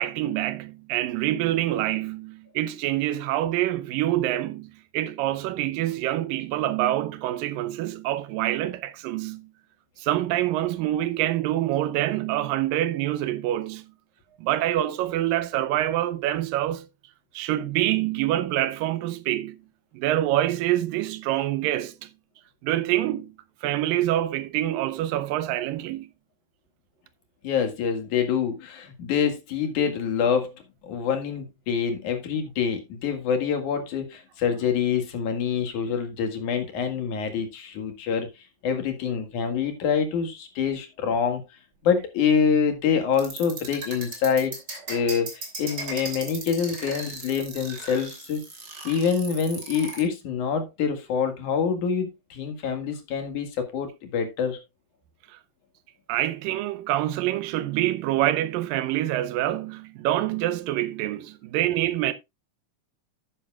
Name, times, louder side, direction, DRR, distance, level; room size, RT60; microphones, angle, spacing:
voice 1, 0.0-9.5 10.0-13.9 14.4-16.9 17.3-19.6 19.9-22.1 22.6-23.3 23.6-26.1 55.3-55.4 56.1-62.1, right 14 dB, 90° right, 2.4 m, -26 dB
voice 2, 27.4-38.3 38.6-41.4 41.8-44.6 44.9-48.4 48.8-54.6, left 7 dB, 65° left, 3.2 m, -26 dB
sound 1, 43.1-50.0, right 3 dB, 30° right, 3.3 m, -36 dB
11.0 x 10.0 x 2.4 m
omnidirectional pair, 3.9 m